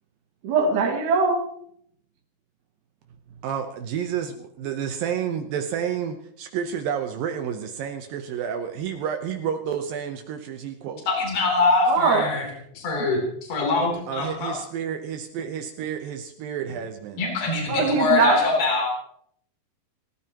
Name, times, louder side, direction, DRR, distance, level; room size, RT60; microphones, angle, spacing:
voice 1, 0.4-1.4 11.9-12.2 17.7-18.4, right 4 dB, 60° right, 1 dB, 3.3 m, -21 dB
voice 2, 3.4-11.1 14.1-17.2, right 8 dB, 75° right, 6 dB, 2.6 m, -30 dB
voice 3, 11.1-12.5 12.7-14.5 17.2-18.9, left 3 dB, 75° left, -1 dB, 5.3 m, -23 dB
30.0 x 14.0 x 3.0 m, 0.67 s
omnidirectional pair, 4.2 m